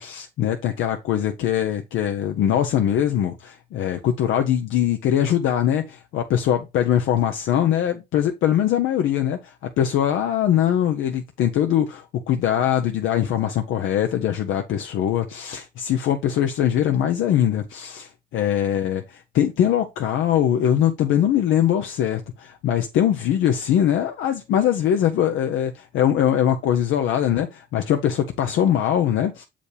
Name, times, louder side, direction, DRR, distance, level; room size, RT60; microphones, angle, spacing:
voice 1, 0.0-29.4, left 10 dB, 85° left, 0.7 m, -22 dB
6.7 x 5.0 x 3.3 m
cardioid pair, 90°, 20 cm